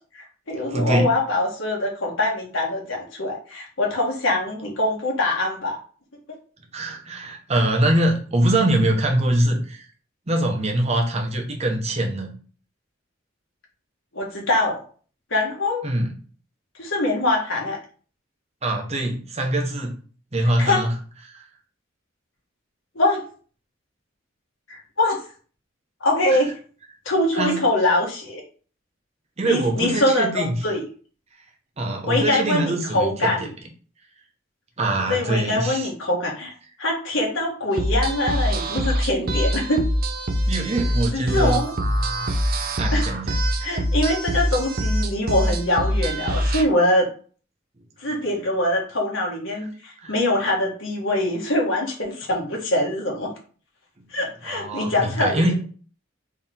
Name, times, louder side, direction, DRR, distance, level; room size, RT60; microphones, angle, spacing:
voice 1, 0.1-5.8 14.1-14.8 15.3-15.8 16.8-17.8 20.6-20.8 22.9-23.2 24.7-25.2 26.0-26.5 27.0-28.4 29.4-30.8 32.0-33.5 35.1-36.5 36.8-39.9 41.1-41.7 42.9-43.1 43.6-47.1 48.0-53.3 54.1-55.5, left 1 dB, 85° left, -2 dB, 1.6 m, -23 dB
voice 2, 0.7-1.1 6.7-9.9 10.3-12.3 15.8-16.1 18.6-19.9 20.3-20.9 21.3-21.4 26.3-26.4 27.4-27.6 29.4-30.6 31.8-33.5 34.8-35.9 40.5-41.6 42.8-43.4 50.0-50.1 54.4-55.5, right 1 dB, 35° right, 2 dB, 1.0 m, -23 dB
sound 1, 37.8-46.6, equal, 50° right, 0.6 m, -24 dB
4.3 x 3.1 x 3.8 m, 0.40 s
head